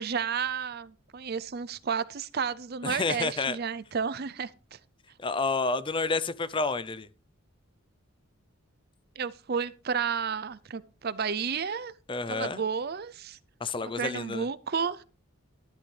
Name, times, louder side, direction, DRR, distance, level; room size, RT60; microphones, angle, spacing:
voice 1, 0.0-4.8 9.2-11.9 12.3-13.4 14.0-15.0, right 6 dB, 45° right, 0.5 m, -32 dB
voice 2, 2.8-3.6 5.2-7.1 12.1-12.6 13.6-14.5, left 3 dB, 25° left, 0.5 m, -29 dB
12.5 x 11.5 x 3.3 m
head